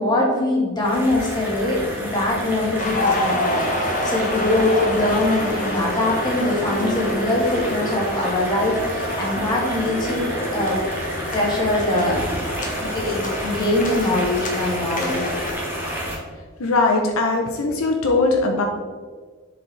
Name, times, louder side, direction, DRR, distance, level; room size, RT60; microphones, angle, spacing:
voice 1, 0.0-10.8 11.3-12.2 12.8-15.4, left 1 dB, 20° left, -4 dB, 1.7 m, -22 dB
sound 1, 0.8-16.2, equal, 10° right, 1.3 m, -30 dB
sound 2, 2.8-15.5, left 1 dB, 40° left, 1.0 m, -27 dB
voice 2, 16.6-18.6, left 3 dB, 75° left, 2 dB, 0.7 m, -20 dB
7.1 x 4.9 x 3.3 m, 1.5 s
head